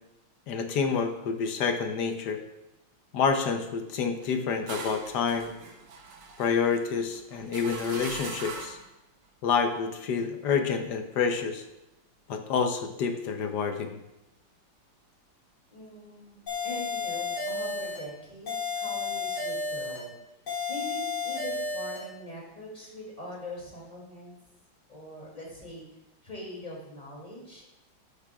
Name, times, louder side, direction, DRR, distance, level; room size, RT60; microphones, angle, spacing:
voice 1, 0.5-2.4 3.1-5.5 6.4-8.8 9.4-11.6 12.3-13.9, left 5 dB, 60° left, 5 dB, 1.2 m, -28 dB
sound 1, 4.2-8.9, right 4 dB, 75° right, 1.9 m, -41 dB
voice 2, 15.7-20.2 20.7-24.4 24.9-25.8 26.2-27.9, left 1 dB, 20° left, -3 dB, 2.7 m, -42 dB
sound 2, 16.5-18.1 18.5-20.1 20.5-22.1, left 4 dB, 80° left, 3.9 m, -32 dB
12.5 x 8.6 x 2.4 m, 0.92 s
omnidirectional pair, 2.3 m